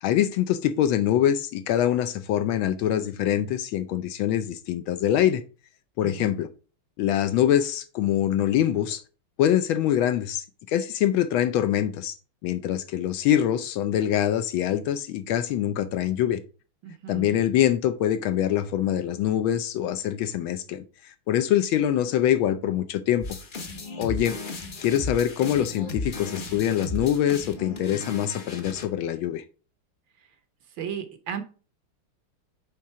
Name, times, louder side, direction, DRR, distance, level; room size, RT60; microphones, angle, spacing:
voice 1, 0.0-5.4 6.0-6.5 7.0-9.0 9.4-12.2 12.4-16.4 17.1-23.2 24.0-24.4 24.8-29.4, left 11 dB, 75° left, 1.2 m, -24 dB
voice 2, 16.8-17.4 30.8-31.4, right 8 dB, 65° right, 1.5 m, -35 dB
sound 1, 23.2-28.8, left 2 dB, 40° left, 0.7 m, -35 dB
8.6 x 3.7 x 4.6 m
omnidirectional pair, 2.4 m